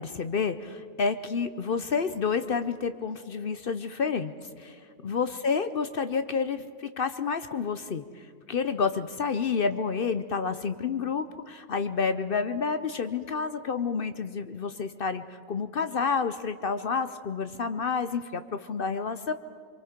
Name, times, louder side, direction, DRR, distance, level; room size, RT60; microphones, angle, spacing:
voice 1, 0.0-19.3, left 5 dB, 50° left, 11 dB, 0.7 m, -29 dB
26.0 x 23.0 x 5.1 m, 2.1 s
omnidirectional pair, 1.4 m